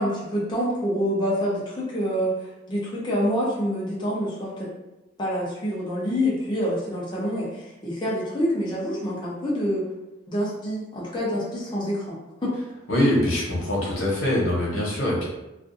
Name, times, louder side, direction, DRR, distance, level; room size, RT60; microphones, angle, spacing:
voice 1, 0.0-4.7 5.2-9.8 10.3-12.2 12.4-12.5, equal, 25° left, -6 dB, 0.5 m, -26 dB
voice 2, 12.9-15.2, left 1 dB, 85° left, -4 dB, 0.9 m, -23 dB
2.5 x 2.3 x 2.5 m, 0.98 s
head